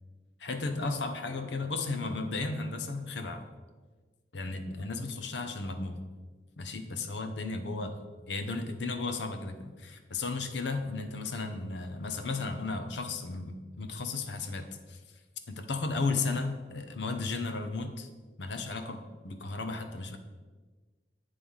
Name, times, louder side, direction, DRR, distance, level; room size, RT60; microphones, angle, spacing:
voice 1, 0.4-3.5 4.3-6.0 6.6-8.0 8.3-15.0 15.5-18.1 18.4-20.2, left 3 dB, 70° left, 7 dB, 0.7 m, -34 dB
8.7 x 3.3 x 5.4 m, 1.4 s
head